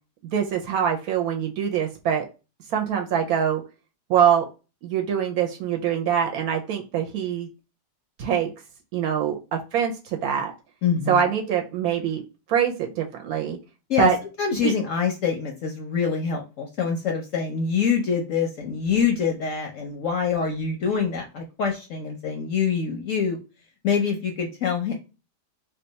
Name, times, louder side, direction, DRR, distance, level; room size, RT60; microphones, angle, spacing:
voice 1, 0.3-2.3 2.7-3.6 4.1-4.5 4.8-7.5 8.2-8.5 8.9-10.5 11.1-12.2 12.5-13.6 14.0-14.2 14.6-14.7, right 8 dB, 70° right, 2 dB, 1.0 m, -24 dB
voice 2, 10.8-11.2 13.9-14.1 14.4-23.4 23.8-24.9, left 6 dB, 65° left, 2 dB, 0.8 m, -25 dB
2.9 x 2.3 x 3.9 m, 0.30 s
omnidirectional pair, 1.8 m